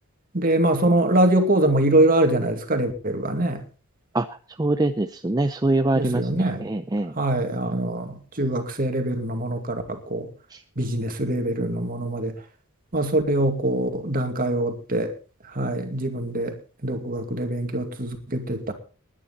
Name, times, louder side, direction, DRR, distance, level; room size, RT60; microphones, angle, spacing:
voice 1, 0.3-3.6 5.9-6.6 7.2-10.3 10.8-12.3 12.9-15.1 15.5-16.5 16.8-18.7, right 1 dB, 40° right, 6 dB, 2.4 m, -23 dB
voice 2, 4.6-7.1 10.5-10.6, right 2 dB, 15° right, 9 dB, 0.6 m, -24 dB
20.0 x 10.0 x 4.1 m, 0.36 s
head